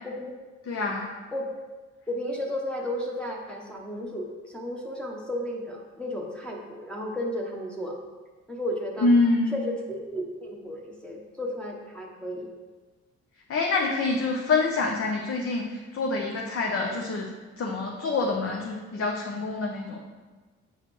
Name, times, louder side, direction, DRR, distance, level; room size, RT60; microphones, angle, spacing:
voice 1, 0.7-1.1 9.0-9.5 13.5-17.3 17.6-20.0, left 3 dB, 45° left, 0 dB, 0.8 m, -26 dB
voice 2, 2.1-8.0 8.5-9.1 9.5-12.5, left 1 dB, 5° left, -3 dB, 0.9 m, -33 dB
7.6 x 4.8 x 3.1 m, 1.3 s
cardioid pair, 90°, 30 cm